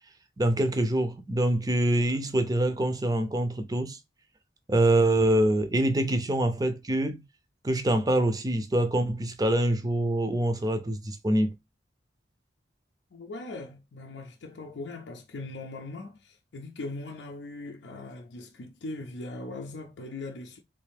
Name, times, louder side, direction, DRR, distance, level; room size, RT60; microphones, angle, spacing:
voice 1, 0.4-4.0 4.7-7.2 7.6-11.5, right 1 dB, 20° right, 0.5 m, -25 dB
voice 2, 13.1-20.6, left 2 dB, 75° left, 0.5 m, -40 dB
3.3 x 2.7 x 3.4 m
head